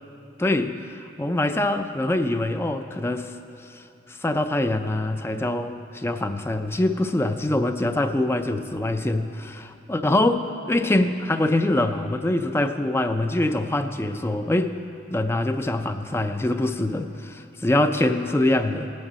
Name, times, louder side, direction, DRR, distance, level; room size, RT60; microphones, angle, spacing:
voice 1, 0.4-3.4 3.6-14.8 15.1-18.9, left 1 dB, 15° left, 8 dB, 0.3 m, -24 dB
18.0 x 9.9 x 4.1 m, 2.8 s
head